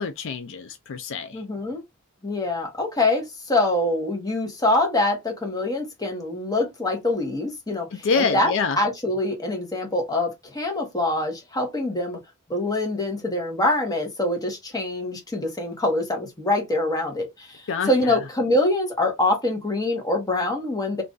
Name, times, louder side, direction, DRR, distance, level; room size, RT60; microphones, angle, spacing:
voice 1, 0.0-1.4 7.9-8.8 17.7-18.2, left 5 dB, 60° left, 0.4 m, -26 dB
voice 2, 1.3-1.8 2.2-12.2 12.5-21.0, left 2 dB, 15° left, 1.0 m, -25 dB
2.5 x 2.4 x 3.7 m
head